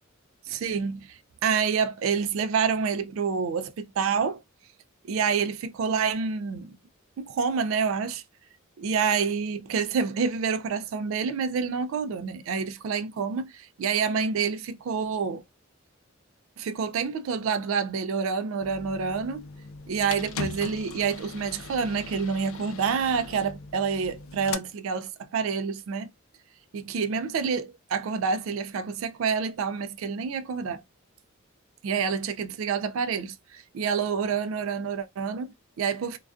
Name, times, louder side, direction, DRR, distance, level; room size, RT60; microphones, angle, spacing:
voice 1, 0.5-4.4 5.1-6.8 7.2-8.2 8.8-15.4 16.6-19.4 19.9-26.1 26.7-30.8 31.8-36.2, right 6 dB, 70° right, 0.3 m, -28 dB
sound 1, 18.6-24.5, left 4 dB, 70° left, 0.3 m, -39 dB
2.3 x 2.3 x 2.4 m
head